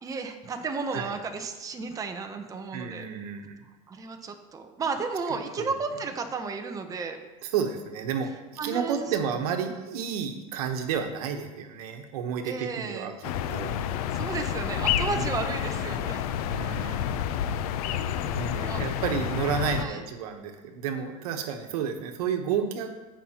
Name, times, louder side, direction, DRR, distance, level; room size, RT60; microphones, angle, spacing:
voice 1, 0.0-3.0 3.9-7.2 8.6-9.2 12.4-13.1 14.1-16.3 18.7-18.9 19.8-20.0, right 4 dB, 20° right, 5 dB, 0.8 m, -33 dB
voice 2, 2.7-3.6 5.6-5.7 7.4-8.3 8.6-13.7 15.1-15.4 16.5-17.1 18.2-22.9, right 7 dB, 85° right, 5 dB, 1.1 m, -31 dB
sound 1, 13.2-19.8, left 9 dB, 80° left, 0.6 m, -29 dB
15.5 x 5.5 x 2.9 m, 1.1 s
supercardioid pair, 130°, 19 cm